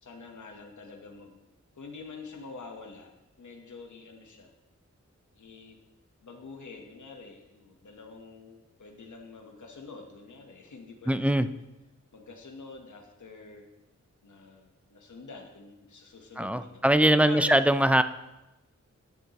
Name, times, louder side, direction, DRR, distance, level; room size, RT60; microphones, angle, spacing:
voice 1, 0.0-1.4 1.7-3.1 3.4-4.5 5.4-5.8 6.2-11.4 12.1-13.7 14.2-17.7, left 4 dB, 70° left, 2 dB, 1.1 m, -46 dB
voice 2, 11.1-11.5 16.4-18.0, right 1 dB, 5° right, 11 dB, 0.3 m, -22 dB
10.5 x 8.2 x 2.9 m, 0.99 s
wide cardioid pair, 95°, 31 cm